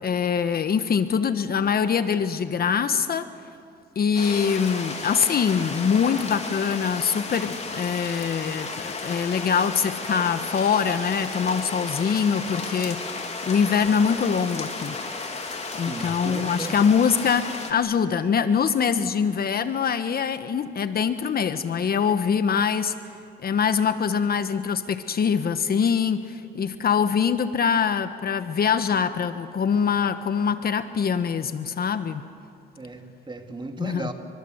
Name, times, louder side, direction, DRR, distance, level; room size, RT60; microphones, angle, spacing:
voice 1, 0.0-3.3 3.9-15.0 15.7-22.9 23.4-32.2 33.8-34.1, left 6 dB, 50° left, 11 dB, 1.2 m, -24 dB
sound 1, 4.1-17.7, left 3 dB, 35° left, 3.6 m, -34 dB
voice 2, 15.7-16.7 32.8-34.1, right 2 dB, 25° right, 4 dB, 2.8 m, -36 dB
28.5 x 24.0 x 8.0 m, 2.4 s
cardioid pair, 90°, 20 cm